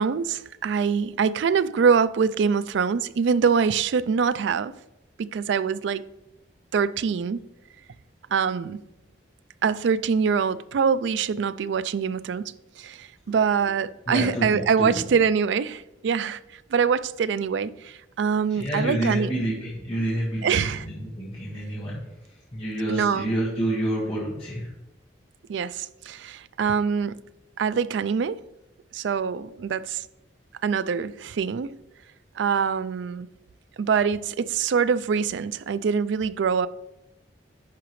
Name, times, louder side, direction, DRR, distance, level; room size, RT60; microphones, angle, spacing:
voice 1, 0.0-4.8 5.2-6.1 6.7-7.4 8.3-8.8 9.6-19.3 20.4-20.8 22.9-23.3 25.5-27.2 27.6-28.4 28.9-30.1 30.6-31.7 32.4-33.3 33.8-36.7, right 6 dB, 70° right, 0.3 m, -24 dB
voice 2, 13.3-13.7 14.1-15.1 18.5-24.7, right 1 dB, 30° left, 1.6 m, -29 dB
10.5 x 5.0 x 3.1 m
head